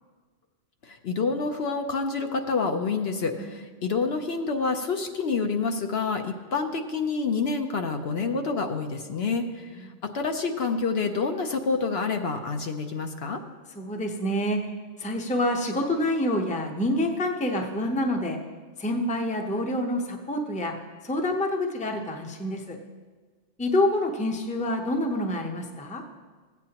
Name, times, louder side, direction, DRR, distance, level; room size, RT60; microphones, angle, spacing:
voice 1, 0.8-13.4, left 4 dB, 65° left, 5 dB, 0.9 m, -28 dB
voice 2, 13.8-14.6 15.0-18.4 18.8-20.7 21.0-22.8 23.6-26.0, left 1 dB, 10° left, 2 dB, 0.6 m, -27 dB
16.0 x 8.3 x 2.9 m, 1.4 s
omnidirectional pair, 1.2 m